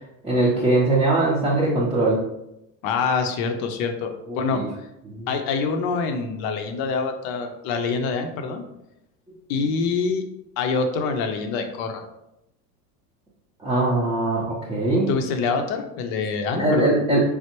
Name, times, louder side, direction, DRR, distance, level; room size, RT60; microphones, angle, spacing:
voice 1, 0.2-2.2 4.3-4.7 5.1-5.3 13.6-15.1 16.6-17.3, right 2 dB, 10° right, -7 dB, 0.6 m, -21 dB
voice 2, 2.8-4.6 5.3-8.6 9.5-10.2 10.6-12.0 15.1-16.9, left 5 dB, 50° left, 5 dB, 0.6 m, -25 dB
3.2 x 2.1 x 2.9 m, 0.85 s
hypercardioid pair, 95°, 48 cm